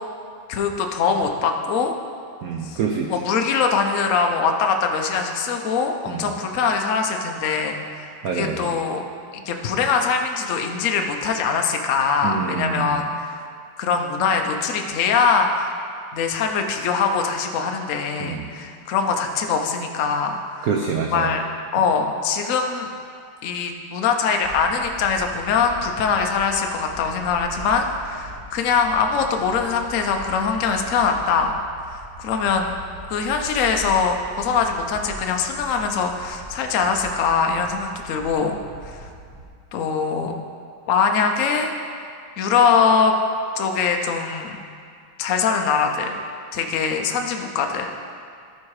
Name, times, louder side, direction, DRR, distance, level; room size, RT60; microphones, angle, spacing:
voice 1, 0.5-1.9 2.7-2.8 3.1-8.1 8.3-9.0 9.3-13.4 13.8-15.7 16.1-20.7 21.1-21.4 21.7-22.9 23.4-31.5 31.9-32.7 33.1-38.6 38.9-39.1 39.7-40.3 40.9-42.1 42.4-43.1 43.6-44.6 45.2-46.2 46.5-47.9, left 5 dB, 80° left, 4 dB, 0.7 m, -22 dB
voice 2, 2.4-3.2 6.1-6.2 8.2-8.8 12.2-12.9 18.2-18.5 20.6-21.3, right 6 dB, 85° right, 1 dB, 0.8 m, -26 dB
sound 1, 24.4-39.5, right 1 dB, 35° right, 0.6 m, -41 dB
13.5 x 4.7 x 4.8 m, 2.3 s
omnidirectional pair, 2.3 m